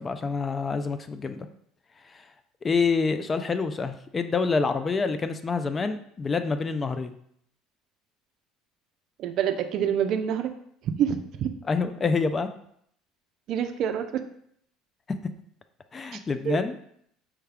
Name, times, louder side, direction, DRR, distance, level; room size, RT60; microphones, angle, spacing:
voice 1, 0.0-1.4 2.6-7.1 11.7-12.5 15.9-16.8, left 4 dB, 25° left, 9 dB, 0.3 m, -27 dB
voice 2, 9.2-10.5 10.8-11.5 13.5-14.1 16.5-16.6, right 9 dB, 60° right, 9 dB, 0.4 m, -26 dB
4.5 x 2.2 x 3.4 m, 0.68 s
supercardioid pair, 100°, 0 cm